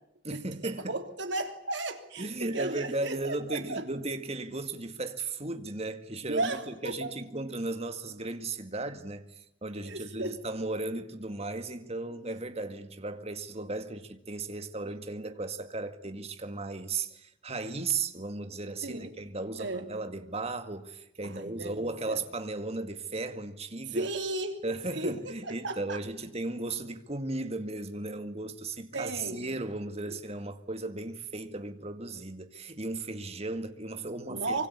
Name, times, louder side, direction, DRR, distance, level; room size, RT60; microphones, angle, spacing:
voice 1, 0.2-0.9 2.2-24.1 24.6-34.7, right 2 dB, 30° right, 2.1 m, -36 dB
voice 2, 0.9-3.8 6.3-7.1 9.8-10.3 18.8-19.1 19.6-19.8 21.2-22.2 23.9-24.6 24.9-26.0 28.9-29.4 30.0-30.1 34.3-34.7, right 2 dB, 60° right, 3.3 m, -35 dB
25.5 x 24.0 x 9.8 m
head